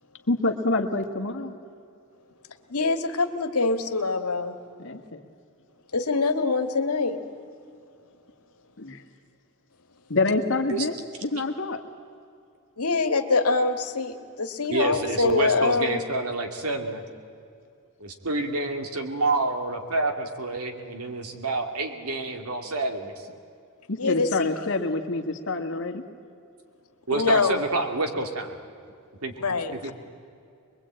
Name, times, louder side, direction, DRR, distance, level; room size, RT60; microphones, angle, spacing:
voice 1, 0.3-1.5 4.8-5.2 8.8-9.0 10.1-11.0 11.2-11.8 23.9-26.0, left 2 dB, 60° left, 5 dB, 1.8 m, -26 dB
voice 2, 2.7-4.6 5.9-7.2 12.8-16.0 24.0-24.6 27.1-27.6 29.4-29.9, left 3 dB, 85° left, 7 dB, 1.8 m, -24 dB
voice 3, 14.7-17.0 18.0-23.3 27.1-28.6 29.2-29.9, right 2 dB, 80° right, 5 dB, 2.6 m, -28 dB
23.5 x 22.5 x 8.8 m, 2.4 s
head